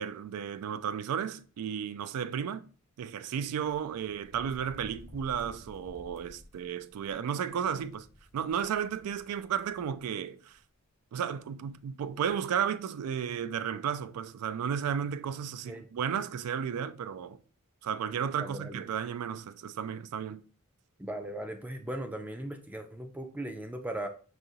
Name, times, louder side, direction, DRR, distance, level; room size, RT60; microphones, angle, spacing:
voice 1, 0.0-2.7 3.0-8.1 8.3-10.6 11.1-17.4 17.8-20.4, right 8 dB, 85° right, 0.3 m, -33 dB
sound 1, 3.4-10.1 10.5-10.6 11.7-11.8 12.0-12.3, left 1 dB, 60° left, 0.6 m, -54 dB
voice 2, 18.4-18.8 21.0-24.1, right 1 dB, 5° right, 0.3 m, -38 dB
4.8 x 2.8 x 2.6 m
head